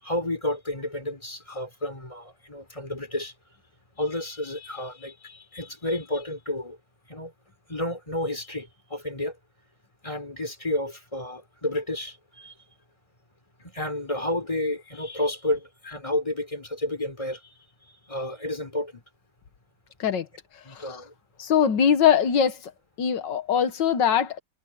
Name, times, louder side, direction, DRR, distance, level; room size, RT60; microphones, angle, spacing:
voice 1, 0.0-3.3 4.0-6.8 7.1-7.3 7.7-9.4 10.0-12.5 13.6-17.5 18.1-19.0 20.6-21.1, left 1 dB, 15° left, 4.7 m, -31 dB
voice 2, 21.4-22.7 23.0-24.4, left 8 dB, 85° left, 1.8 m, -22 dB
omnidirectional pair, 1.9 m